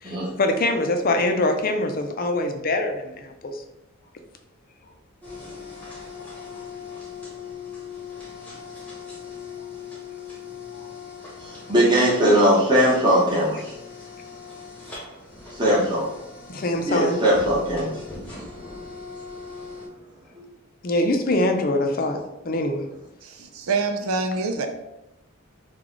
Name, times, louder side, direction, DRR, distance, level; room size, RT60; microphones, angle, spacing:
voice 1, 0.0-3.6 6.2-6.3 16.5-17.2 20.8-22.2 22.4-22.9, left 2 dB, 40° left, 5 dB, 0.5 m, -24 dB
sound 1, 5.2-19.9, left 5 dB, 5° left, 1.0 m, -40 dB
voice 2, 11.4-13.7 15.5-16.1 16.9-18.0 20.4-20.5, equal, 20° right, -6 dB, 1.0 m, -20 dB
voice 3, 23.2-24.7, right 4 dB, 80° right, 6 dB, 0.6 m, -26 dB
4.9 x 2.4 x 3.7 m, 0.90 s
head